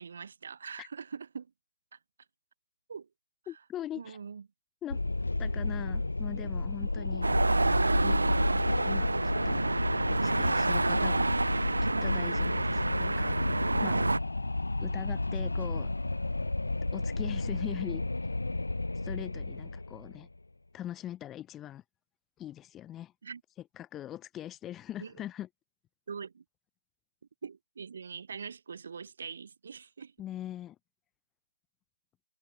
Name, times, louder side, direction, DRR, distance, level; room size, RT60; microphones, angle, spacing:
voice 1, 0.0-1.5 2.9-3.1 3.5-3.6 3.9-4.5 23.2-23.4 25.0-25.1 26.1-26.4 27.4-30.1, right 6 dB, 40° right, 3.6 m, -43 dB
voice 2, 3.5-4.2 4.8-5.0 5.4-7.3 8.0-8.2 8.8-9.1 9.4-9.6 10.1-11.3 12.0-13.4 13.8-14.1 14.8-15.9 16.9-18.0 18.9-20.3 20.7-21.8 22.4-23.1 23.8-25.5 30.2-30.8, left 12 dB, 10° left, 1.1 m, -41 dB
Wind, 4.9-20.2, left 2 dB, 70° left, 0.5 m, -32 dB
sound 1, 7.2-14.2, right 3 dB, 65° right, 0.4 m, -28 dB
figure-of-eight pair, 150°, 0 cm